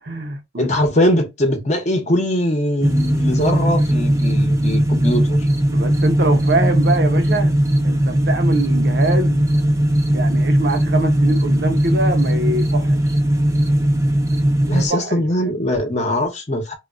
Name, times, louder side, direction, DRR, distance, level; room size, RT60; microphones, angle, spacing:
voice 1, 0.0-0.7 5.7-7.6 7.8-9.4 10.1-13.0 14.7-15.5, right 2 dB, 55° right, 0.7 m, -23 dB
voice 2, 0.6-5.4 14.7-16.7, left 1 dB, 35° left, 0.8 m, -21 dB
sound 1, 2.8-14.9, right 1 dB, 15° right, 0.4 m, -18 dB
3.6 x 2.3 x 2.4 m
head